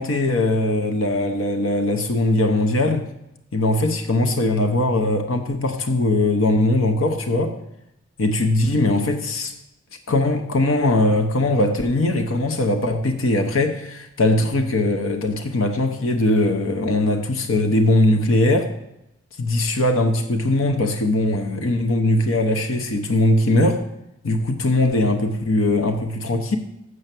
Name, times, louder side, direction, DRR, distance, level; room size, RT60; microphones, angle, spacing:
voice 1, 0.0-3.1 3.5-7.6 8.2-9.5 10.1-18.7 19.4-23.8 24.2-26.6, left 2 dB, 80° left, 0.9 m, -20 dB
8.0 x 6.7 x 5.9 m
head